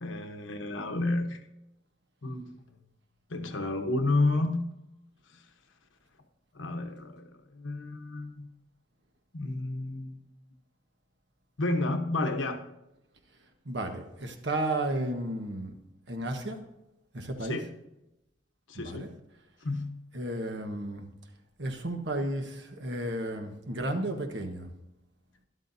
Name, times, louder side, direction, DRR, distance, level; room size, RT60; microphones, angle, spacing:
voice 1, 0.0-1.4 2.2-2.6 3.3-4.7 5.3-5.4 6.5-8.5 9.3-10.2 11.6-12.6 17.4-17.7 18.7-19.1 19.6-20.0, left 2 dB, 85° left, 5 dB, 1.2 m, -31 dB
voice 2, 13.6-15.7 16.1-16.6 17.1-17.7 18.7-19.1 20.1-21.1 21.6-24.7, right 1 dB, 60° right, 5 dB, 1.3 m, -33 dB
13.0 x 11.5 x 2.7 m, 0.90 s
head